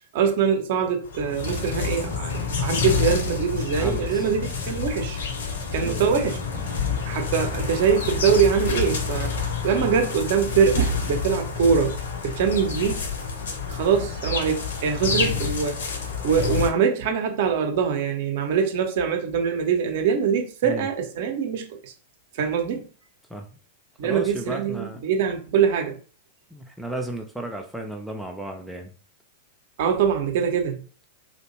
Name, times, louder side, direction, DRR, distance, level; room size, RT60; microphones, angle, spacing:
voice 1, 0.1-5.2 5.7-6.4 7.1-9.3 9.6-12.0 12.2-13.0 13.7-15.8 16.2-21.9 22.3-22.9 24.0-26.0 29.8-30.8, right 6 dB, 50° right, 0.6 m, -23 dB
sound 1, 1.0-16.7, left 5 dB, 65° left, 0.6 m, -28 dB
voice 2, 3.8-4.3 5.8-6.2 20.6-20.9 23.3-23.5 24.0-25.0 26.5-29.0, right 1 dB, ahead, 0.4 m, -34 dB
2.6 x 2.1 x 2.9 m
figure-of-eight pair, 95°, 0 cm